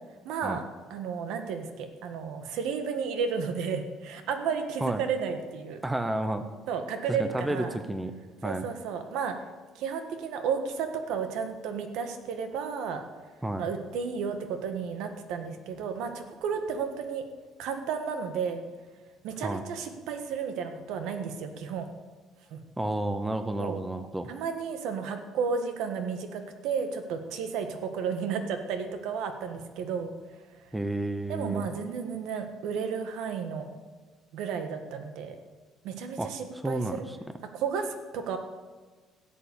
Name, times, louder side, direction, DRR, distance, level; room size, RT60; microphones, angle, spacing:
voice 1, 0.2-0.6 0.9-5.8 6.7-7.8 8.4-9.3 9.7-13.0 13.6-17.2 17.6-18.6 19.2-21.9 22.5-22.6 23.6-23.8 24.3-30.1 31.3-33.7 34.3-35.4 35.8-37.0 37.5-38.4, right 6 dB, 70° right, 7 dB, 1.6 m, -32 dB
voice 2, 5.8-6.4 7.1-8.1 8.4-8.6 13.4-13.7 19.4-19.6 22.8-24.3 30.7-31.7 36.2-36.3 36.6-37.2, right 1 dB, 5° right, 9 dB, 0.6 m, -31 dB
15.5 x 7.9 x 8.5 m, 1.4 s
cardioid pair, 175°, 0 cm